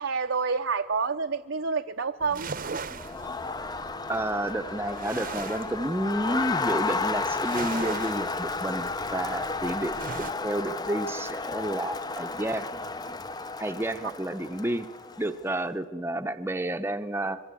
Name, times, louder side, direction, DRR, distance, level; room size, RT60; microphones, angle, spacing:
voice 1, 0.0-2.5 14.0-14.1, right 5 dB, 70° right, 6 dB, 0.7 m, -28 dB
sound 1, 2.2-10.3, right 4 dB, 45° right, 0.9 m, -40 dB
Crowd, 2.9-15.4, left 4 dB, 20° left, 0.7 m, -33 dB
voice 2, 4.1-10.0 10.4-12.7 13.6-14.9 15.2-17.4, right 1 dB, 10° right, 8 dB, 0.8 m, -30 dB
25.0 x 22.5 x 8.4 m, 1.5 s
head